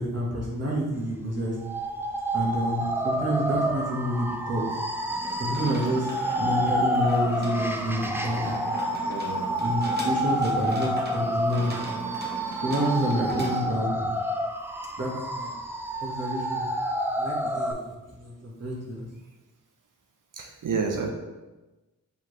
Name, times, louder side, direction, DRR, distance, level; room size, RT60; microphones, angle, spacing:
voice 1, 0.0-1.5 2.3-4.6 5.4-6.1 6.3-8.5 9.6-11.7 12.6-14.0 15.0-15.5 16.0-16.7 17.2-19.1, equal, 50° right, -4 dB, 1.3 m, -28 dB
sound 1, 1.6-17.7, right 1 dB, 5° right, 0.4 m, -29 dB
sound 2, 5.1-13.6, right 2 dB, 30° right, 0.8 m, -38 dB
voice 2, 9.0-9.5 20.3-21.1, right 5 dB, 75° right, 2 dB, 0.6 m, -30 dB
4.7 x 3.5 x 3.1 m, 1.1 s
cardioid pair, 55°, 33 cm